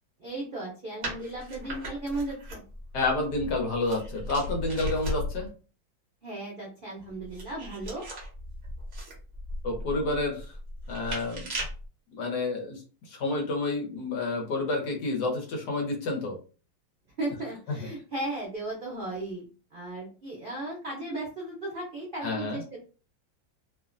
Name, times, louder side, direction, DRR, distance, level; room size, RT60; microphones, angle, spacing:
voice 1, 0.2-2.6 6.2-8.0 17.2-19.5 19.7-22.8, right 2 dB, 85° right, -3 dB, 0.4 m, -36 dB
sound 1, 1.0-5.5 7.0-11.9, left 1 dB, 50° right, 1.0 m, -37 dB
voice 2, 2.9-5.5 9.6-10.4 10.9-11.5 12.1-12.8 13.1-16.4 17.7-17.8 22.2-22.6, left 2 dB, 65° left, 1 dB, 1.2 m, -29 dB
3.1 x 2.1 x 2.4 m, 0.36 s
omnidirectional pair, 2.0 m